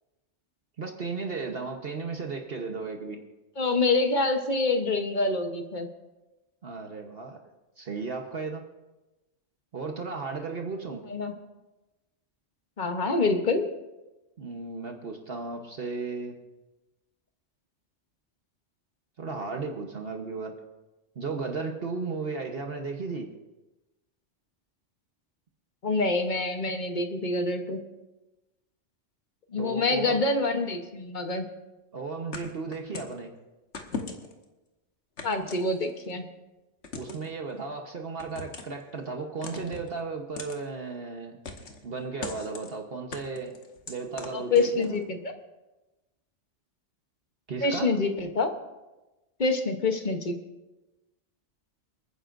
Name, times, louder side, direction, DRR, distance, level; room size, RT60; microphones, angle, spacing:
voice 1, 0.8-3.2 6.6-7.4 7.8-8.6 9.7-11.0 14.4-16.4 19.2-20.5 21.2-23.3 29.6-30.2 31.9-33.3 36.9-41.4 41.8-43.5 43.9-45.0 47.5-47.9, right 4 dB, 55° right, 3 dB, 1.2 m, -35 dB
voice 2, 3.6-5.9 11.1-11.3 12.8-13.7 25.8-27.8 29.5-31.4 35.2-36.2 44.3-45.3 47.6-48.5 49.4-50.4, left 3 dB, 40° left, 6 dB, 1.1 m, -26 dB
sound 1, 32.3-33.2 33.7-34.4 35.2-36.1 36.8-37.3 38.2-38.8 39.4-39.9 40.4-40.6 41.4-41.8 42.2-42.7 43.1-45.0, left 4 dB, 65° left, 1.5 m, -39 dB
28.0 x 9.8 x 2.6 m, 1.1 s
omnidirectional pair, 1.2 m